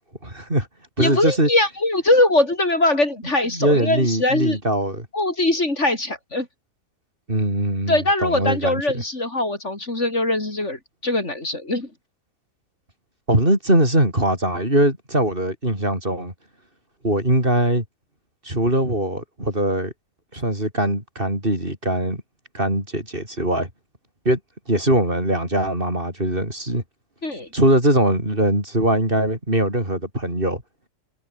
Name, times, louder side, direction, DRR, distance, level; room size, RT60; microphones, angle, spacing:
voice 1, 0.2-0.7 1.0-1.5 3.5-5.1 7.3-9.0 13.3-16.3 17.0-17.8 18.4-19.9 20.3-22.2 22.5-23.7 24.2-24.4 24.7-26.8 27.5-30.6, right 1 dB, 35° right, 8.1 m, -21 dB
voice 2, 1.0-4.6 5.1-6.5 7.9-11.9 27.2-27.5, left 2 dB, 50° left, 4.8 m, -21 dB
omnidirectional pair, 1.6 m